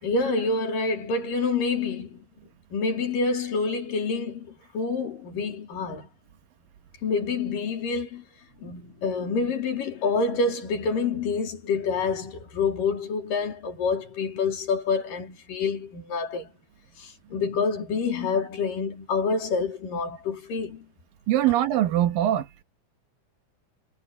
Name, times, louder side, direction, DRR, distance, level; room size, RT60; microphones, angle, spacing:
voice 1, 0.0-2.2 2.7-6.1 7.0-8.2 8.6-16.5 17.0-20.9, left 4 dB, 65° left, 5.1 m, -27 dB
voice 2, 21.3-22.6, right 12 dB, 75° right, 2.9 m, -22 dB
omnidirectional pair, 4.2 m